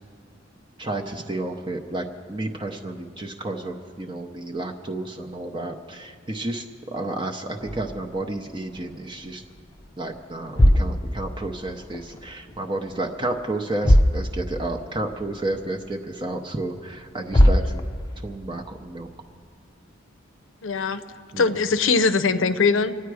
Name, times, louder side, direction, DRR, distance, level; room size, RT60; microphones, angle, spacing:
voice 1, 0.8-9.4 10.0-17.8 18.2-19.1 21.3-21.6, right 2 dB, 25° right, 3 dB, 0.6 m, -31 dB
sound 1, 7.6-9.3 9.6-9.9 10.3-12.2 12.5-13.2 13.4-13.5 13.8-14.8 15.1-15.2 15.9-16.0 16.9-17.0 17.3-18.3, equal, 20° left, 0.5 m, -21 dB
voice 2, 20.6-21.0 21.4-22.9, left 4 dB, 75° left, 10 dB, 0.6 m, -21 dB
25.5 x 9.4 x 4.8 m, 2.2 s
head